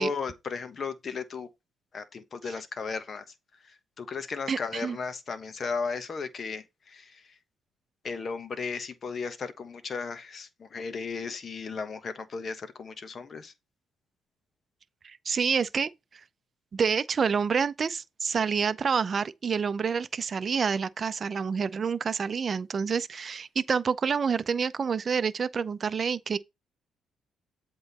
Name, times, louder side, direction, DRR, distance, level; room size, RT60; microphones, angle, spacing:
voice 1, 0.0-1.5 1.9-3.2 4.0-7.2 8.0-13.5, left 5 dB, 45° left, 1.2 m, -35 dB
voice 2, 4.5-5.0 15.0-16.2 16.7-26.4, right 6 dB, 45° right, 0.6 m, -28 dB
7.9 x 3.8 x 4.1 m
cardioid pair, 90°, 0 cm